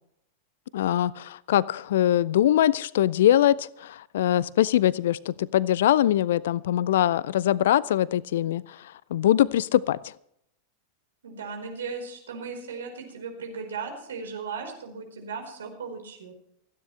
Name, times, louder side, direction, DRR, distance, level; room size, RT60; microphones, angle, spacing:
voice 1, 0.7-8.6 9.1-10.0, left 12 dB, 60° left, 0.4 m, -22 dB
voice 2, 11.2-16.3, right 5 dB, 65° right, 4.5 m, -37 dB
29.0 x 9.8 x 3.3 m
figure-of-eight pair, 90°, 0 cm